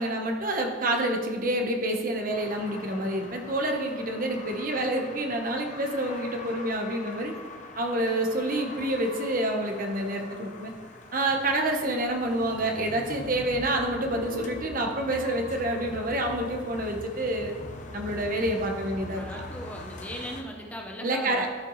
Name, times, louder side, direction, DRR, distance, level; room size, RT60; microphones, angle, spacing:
voice 1, 0.0-7.3 7.8-10.7 11.1-17.5 17.9-19.2 21.0-21.5, right 1 dB, 45° right, 3 dB, 1.1 m, -28 dB
sound 1, 2.3-20.4, left 2 dB, 40° left, 0.8 m, -43 dB
sound 2, 12.2-16.0, right 1 dB, 75° right, 1.3 m, -44 dB
voice 2, 19.1-21.5, equal, 10° left, 0 dB, 0.8 m, -39 dB
12.5 x 7.5 x 3.2 m, 1.5 s
head